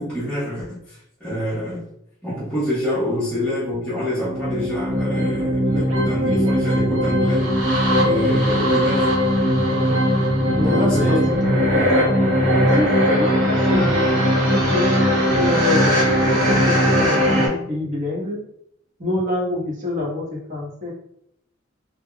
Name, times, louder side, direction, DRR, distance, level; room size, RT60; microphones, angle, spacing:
voice 1, 0.0-1.9 2.2-7.5 8.0-9.1 10.4-11.5, left 1 dB, 5° left, -12 dB, 1.0 m, -26 dB
sound 1, 4.2-17.5, equal, 75° right, 1.1 m, -19 dB
voice 2, 9.7-10.0 10.5-12.2 12.4-14.9 15.3-16.0 16.3-18.5 19.0-20.9, left 2 dB, 40° right, -5 dB, 1.1 m, -26 dB
3.5 x 2.3 x 2.2 m, 0.74 s
head